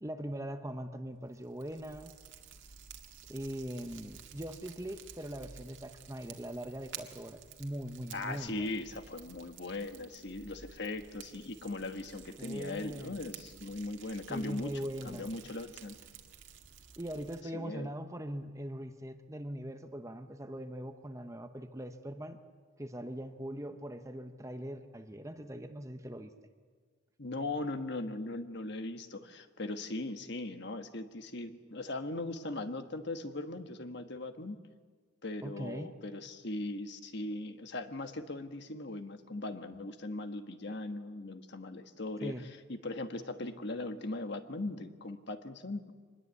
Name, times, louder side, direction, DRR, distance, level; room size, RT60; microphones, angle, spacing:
voice 1, 0.0-2.1 3.3-8.7 12.4-13.1 14.3-15.3 17.0-22.4 22.8-26.3 35.4-35.9 42.2-42.5, right 1 dB, 15° right, 8 dB, 0.9 m, -41 dB
Fire, 1.2-17.4, right 7 dB, 55° right, 2.0 m, -52 dB
voice 2, 8.1-14.7 15.0-16.0 17.5-17.9 27.2-34.6 35.2-42.3 42.7-45.9, left 2 dB, 50° left, 8 dB, 1.4 m, -39 dB
25.0 x 20.5 x 8.3 m, 1.5 s
head